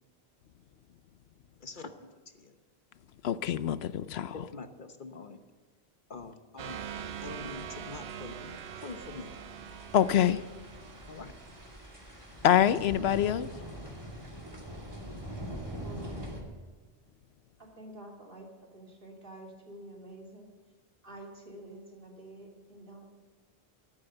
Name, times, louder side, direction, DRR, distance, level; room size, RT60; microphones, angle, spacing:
voice 1, 1.6-2.5 4.3-5.4 6.1-6.9 7.2-9.3 11.1-11.4, left 4 dB, 55° left, 1.1 m, -45 dB
voice 2, 3.2-4.3 9.9-10.4 12.4-13.5, left 10 dB, 85° left, 0.9 m, -25 dB
sound 1, 6.6-12.0, right 8 dB, 85° right, 1.0 m, -43 dB
sound 2, 6.7-16.4, equal, 25° right, 2.5 m, -44 dB
voice 3, 15.6-16.3 17.6-20.5 21.0-23.1, right 1 dB, 60° right, 3.1 m, -48 dB
12.5 x 12.0 x 7.8 m
omnidirectional pair, 1.0 m